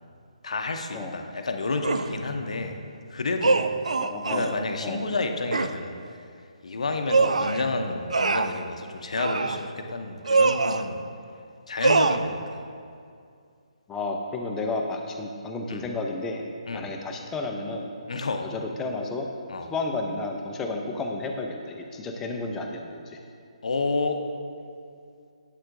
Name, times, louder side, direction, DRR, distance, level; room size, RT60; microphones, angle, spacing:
voice 1, 0.4-2.8 3.1-3.7 4.2-6.0 6.6-11.0 11.7-12.6 15.7-15.9 16.7-16.9 18.1-18.5 19.5-19.7 23.6-24.2, left 3 dB, 65° left, 5 dB, 0.6 m, -30 dB
sound 1, 1.8-2.1 3.4-4.5 5.5-5.8 7.1-7.6 8.1-8.6 9.2-9.6 10.3-10.9 11.8-12.2, right 4 dB, 70° right, 0.3 m, -23 dB
voice 2, 3.9-5.1 7.2-7.4 13.9-16.4 16.7-17.9 18.4-19.3 19.7-23.2, left 3 dB, 10° left, 2 dB, 0.5 m, -32 dB
8.3 x 7.9 x 2.6 m, 2.4 s
figure-of-eight pair, 140°, 4 cm